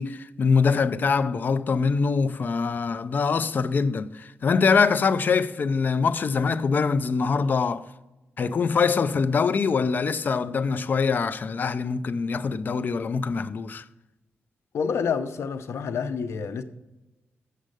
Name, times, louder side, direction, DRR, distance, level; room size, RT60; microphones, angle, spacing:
voice 1, 0.0-7.9 8.4-13.8, left 5 dB, 45° left, 0.5 m, -24 dB
voice 2, 14.7-16.6, left 6 dB, 80° left, 0.7 m, -28 dB
7.4 x 6.5 x 6.6 m
wide cardioid pair, 135°, 4 cm